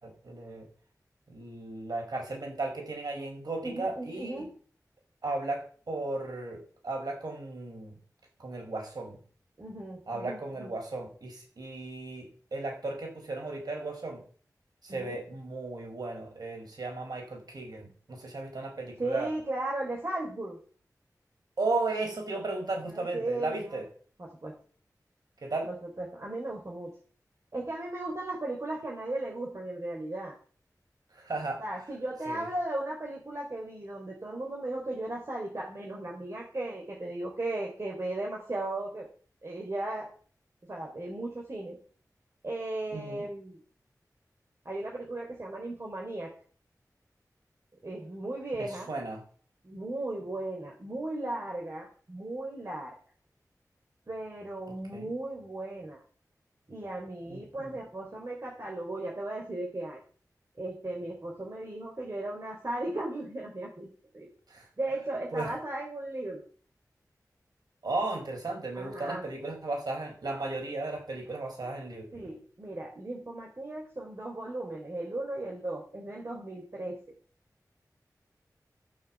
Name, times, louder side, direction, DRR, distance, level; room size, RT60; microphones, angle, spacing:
voice 1, 0.0-0.7 1.3-4.4 5.2-8.0 8.4-9.2 10.1-14.2 14.8-19.3 21.6-23.8 25.4-25.7 31.1-31.6 32.3-32.5 42.9-43.2 48.6-49.2 54.9-55.1 57.3-57.7 64.5-64.7 65.3-65.5 67.8-72.2, right 2 dB, 80° right, 2 dB, 5.4 m, -35 dB
voice 2, 3.6-4.5 9.6-10.7 14.9-15.2 19.0-20.6 22.8-23.8 24.2-24.5 25.7-26.9 27.5-30.3 31.6-39.1 39.4-40.1 40.7-41.8 42.4-43.6 44.7-46.3 47.8-48.9 49.6-53.0 54.1-56.0 56.7-60.0 60.6-63.9 64.1-64.3 64.8-66.4 68.7-69.2 72.1-77.0, right 2 dB, 45° right, -2 dB, 3.8 m, -36 dB
14.0 x 6.8 x 7.5 m, 0.43 s
wide cardioid pair, 80°, 7 cm